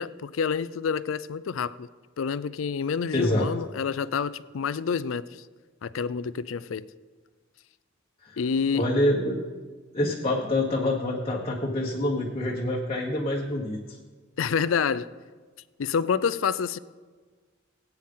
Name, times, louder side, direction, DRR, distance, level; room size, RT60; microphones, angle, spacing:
voice 1, 0.0-1.9 2.2-5.3 5.8-6.9 8.4-8.9 14.4-15.1 15.8-16.8, left 6 dB, 80° left, 16 dB, 0.4 m, -28 dB
voice 2, 3.1-3.5 8.3-8.4 8.7-9.4 9.9-13.8, left 1 dB, 30° left, -3 dB, 1.2 m, -26 dB
18.5 x 9.0 x 3.8 m, 1.4 s
head